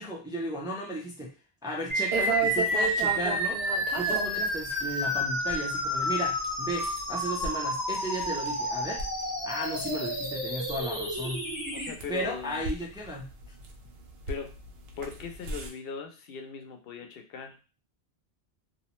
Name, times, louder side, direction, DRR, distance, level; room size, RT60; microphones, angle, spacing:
voice 1, 0.0-1.3 1.6-3.6 3.9-9.0 9.4-11.5 12.1-13.3, right 1 dB, 5° right, -2 dB, 0.3 m, -34 dB
sound 1, 1.9-11.9, equal, 20° left, 1.0 m, -30 dB
sound 2, 2.1-15.7, right 4 dB, 75° right, 0.8 m, -37 dB
voice 2, 11.7-12.7 14.3-14.6 15.0-17.6, left 5 dB, 70° left, 4 dB, 0.8 m, -39 dB
2.5 x 2.1 x 2.9 m, 0.32 s
omnidirectional pair, 1.0 m